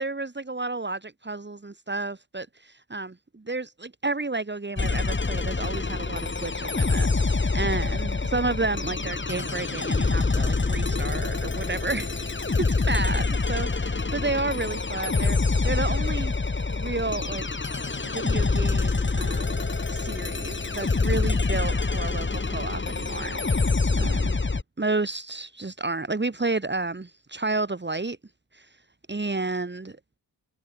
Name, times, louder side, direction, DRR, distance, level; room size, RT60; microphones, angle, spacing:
voice 1, 0.0-12.3 12.6-16.3 16.7-17.5 18.0-23.7 24.0-24.4 24.8-28.2 28.5-28.7 29.1-30.0, right 3 dB, 25° right, 4.6 m, -31 dB
sound 1, 4.8-24.6, left 3 dB, 25° left, 2.4 m, -26 dB
wide cardioid pair, 135°, 45 cm